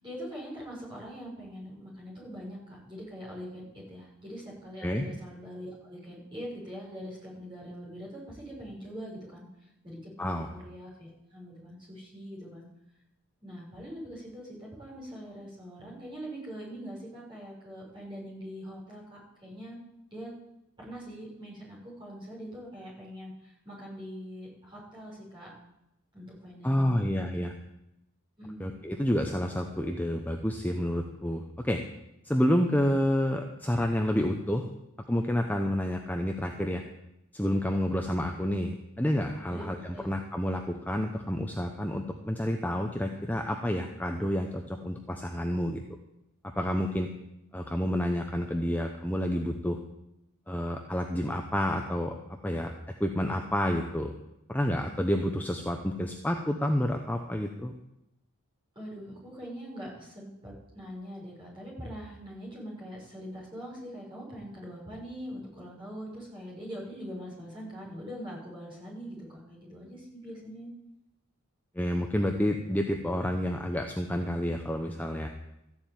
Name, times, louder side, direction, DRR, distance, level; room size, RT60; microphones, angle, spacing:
voice 1, 0.0-9.5 9.8-12.7 13.4-19.8 20.1-20.3 20.8-25.5 26.1-27.4 28.4-28.7 39.5-40.1 58.7-70.7, equal, 20° right, -5 dB, 6.7 m, -43 dB
voice 2, 26.6-27.5 28.6-31.8 32.2-34.7 35.1-36.8 37.3-45.8 46.6-47.1 47.5-49.8 50.5-52.1 52.4-52.7 53.0-54.1 54.5-57.7 71.7-75.3, equal, 10° left, 3 dB, 0.8 m, -29 dB
14.0 x 7.3 x 9.2 m, 0.87 s
head